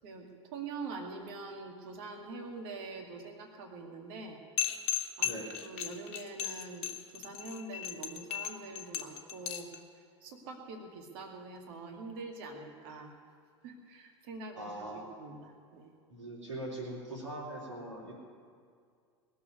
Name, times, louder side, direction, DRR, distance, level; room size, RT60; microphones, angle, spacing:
voice 1, 0.0-4.4 5.2-6.9 7.1-9.7 10.2-13.2 13.6-15.9, right 3 dB, 55° right, 2 dB, 2.2 m, -44 dB
sound 1, 4.6-9.8, left 12 dB, 45° left, 1.4 m, -35 dB
voice 2, 5.2-5.6 14.6-15.0 16.1-18.1, right 1 dB, 80° right, -3 dB, 3.3 m, -41 dB
20.0 x 7.1 x 9.6 m, 2.2 s
figure-of-eight pair, 80°, 15 cm